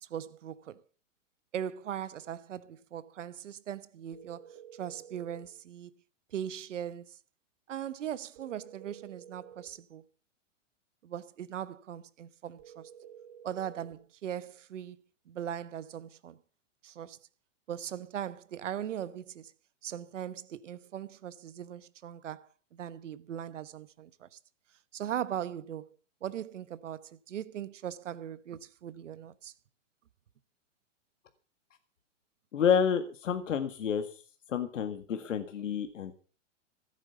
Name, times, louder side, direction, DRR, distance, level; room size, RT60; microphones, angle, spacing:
voice 1, 0.0-0.8 1.5-5.9 6.3-7.2 7.7-10.0 11.0-12.9 13.4-16.4 16.8-17.2 17.7-19.5 19.8-24.4 24.9-25.9 26.2-29.5, right 10 dB, 80° right, 1.3 m, -39 dB
sound 1, 4.1-5.5 8.3-9.8 12.6-14.0, right 8 dB, 45° right, 3.7 m, -51 dB
voice 2, 32.5-34.2 34.5-36.1, left 7 dB, 85° left, 1.9 m, -29 dB
15.5 x 9.1 x 7.0 m
hypercardioid pair, 145°, 36 cm